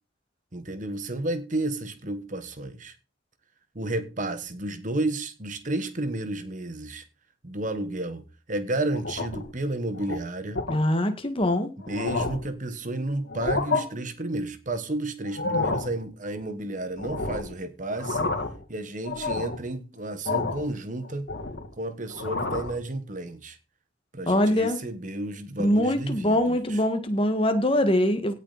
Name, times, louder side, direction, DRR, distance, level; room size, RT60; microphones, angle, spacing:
voice 1, 0.5-2.9 3.7-7.0 7.4-10.6 11.9-18.3 18.7-21.3 21.8-23.6 24.1-26.8, right 2 dB, 45° right, 1.4 m, -32 dB
sound 1, 8.9-9.5 9.9-10.2 10.6-10.8 11.4-11.5 11.8-12.5 13.3-13.8 15.2-15.9 17.0-17.5 17.9-18.6 19.0-19.6 20.2-20.7 21.0-21.7 22.1-22.8, left 3 dB, 65° left, 2.7 m, -29 dB
voice 2, 10.7-11.7 24.2-24.8 25.6-28.3, left 1 dB, 30° left, 1.9 m, -23 dB
17.5 x 7.2 x 4.2 m
head